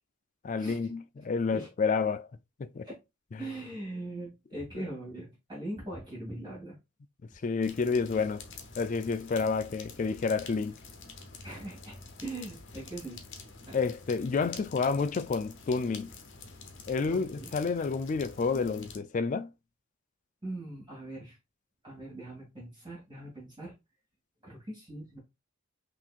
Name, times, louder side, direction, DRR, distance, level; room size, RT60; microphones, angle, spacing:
voice 1, 0.4-2.3 2.6-2.9 7.4-8.5 8.8-10.8 13.7-16.1 16.9-19.5, left 4 dB, 35° left, 0.3 m, -29 dB
voice 2, 3.4-6.8 11.4-13.3 13.7-13.8 17.1-17.5 20.4-21.4 21.8-23.7 24.4-25.2, right 1 dB, 20° right, 2.2 m, -41 dB
sound 1, 7.6-19.0, left 4 dB, 60° left, 0.9 m, -48 dB
5.9 x 2.9 x 2.4 m
head